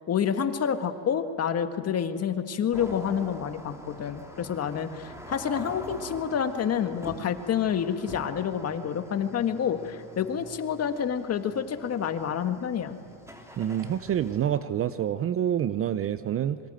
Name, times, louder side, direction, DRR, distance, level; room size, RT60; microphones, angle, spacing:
voice 1, 0.1-13.0, left 8 dB, 35° left, 8 dB, 1.8 m, -28 dB
sound 1, 2.7-14.4, equal, 5° right, 3.6 m, -45 dB
voice 2, 13.6-16.6, right 10 dB, 30° right, 13 dB, 0.7 m, -27 dB
26.5 x 23.5 x 9.1 m, 2.4 s
supercardioid pair, 130°, 45 cm